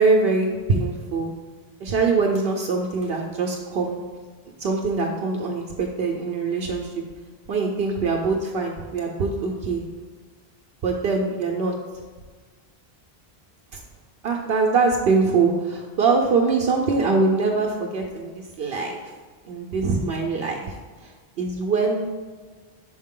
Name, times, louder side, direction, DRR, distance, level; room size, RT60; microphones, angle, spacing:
voice 1, 0.0-1.3 1.8-4.1 4.6-6.9 7.5-9.8 10.8-11.7 13.7-13.8 14.2-19.0 19.4-21.1 21.4-22.1, right 4 dB, 75° right, 1 dB, 0.8 m, -23 dB
6.4 x 4.8 x 3.7 m, 1.4 s
omnidirectional pair, 1.0 m